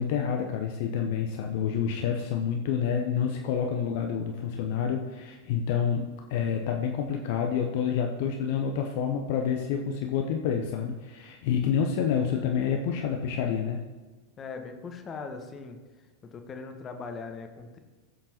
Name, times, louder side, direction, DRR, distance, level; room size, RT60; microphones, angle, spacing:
voice 1, 0.0-13.8, left 7 dB, 50° left, 3 dB, 0.8 m, -28 dB
voice 2, 14.4-15.8 16.2-17.8, left 4 dB, 25° left, 5 dB, 1.1 m, -40 dB
15.0 x 7.6 x 2.9 m, 1.3 s
figure-of-eight pair, 90°, 0 cm